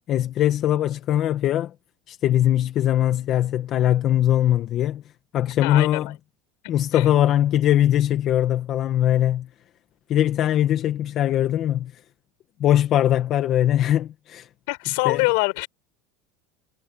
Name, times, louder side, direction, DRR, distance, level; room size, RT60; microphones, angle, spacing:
voice 1, 0.1-1.7 2.1-5.0 5.3-6.2 6.7-9.5 10.1-11.9 12.6-14.5 15.0-15.2, left 12 dB, 40° left, 1.1 m, -21 dB
voice 2, 5.6-6.1 6.9-7.1 14.7-15.7, left 30 dB, 70° left, 6.6 m, -24 dB
supercardioid pair, 145°, 0 cm